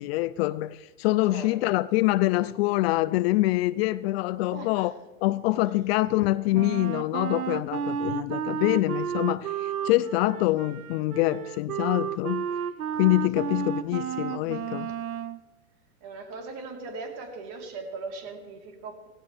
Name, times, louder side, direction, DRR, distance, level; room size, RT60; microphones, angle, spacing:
voice 1, 0.0-4.9 5.2-12.5 13.0-14.9, left 18 dB, 50° left, 0.5 m, -25 dB
voice 2, 1.3-1.7 4.5-4.9 9.8-9.9 13.3-13.5 16.0-19.1, right 3 dB, 50° right, 3.9 m, -39 dB
Wind instrument woodwind instrument, 6.5-15.4, right 9 dB, 90° right, 0.8 m, -32 dB
17.5 x 17.5 x 3.5 m
hypercardioid pair, 110°, 42 cm